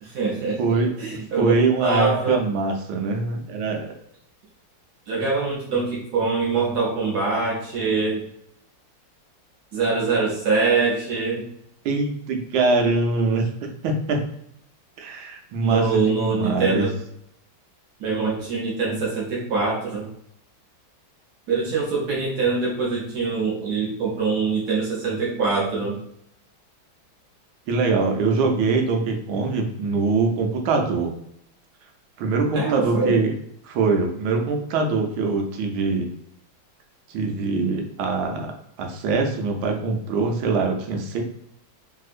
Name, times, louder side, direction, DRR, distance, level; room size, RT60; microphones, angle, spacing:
voice 1, 0.0-1.5 1.8-2.4 5.1-8.2 9.7-11.4 15.6-17.0 18.0-20.1 21.5-26.0 32.5-33.2, right 4 dB, 65° right, -3 dB, 1.0 m, -24 dB
voice 2, 0.6-0.9 1.4-3.9 11.8-13.5 13.8-14.2 15.0-16.9 27.7-31.1 32.2-33.3 33.6-36.1 37.1-38.5 38.8-41.2, right 3 dB, 80° right, 3 dB, 1.4 m, -23 dB
3.3 x 2.7 x 2.4 m, 0.73 s
omnidirectional pair, 2.2 m